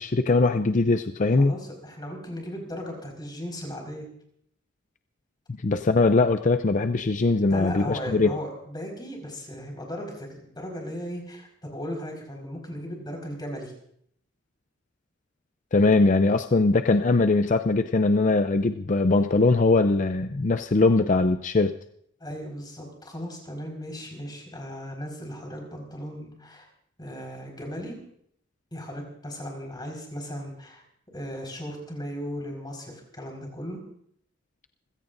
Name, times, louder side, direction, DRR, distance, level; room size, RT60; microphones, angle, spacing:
voice 1, 0.0-1.5 5.6-8.3 15.7-21.7, left 3 dB, 40° left, 8 dB, 0.5 m, -21 dB
voice 2, 1.4-4.0 7.5-13.7 22.2-26.6 27.0-28.0 28.7-30.8 31.1-33.8, equal, 20° left, 1 dB, 4.8 m, -36 dB
27.5 x 16.0 x 2.6 m, 0.68 s
head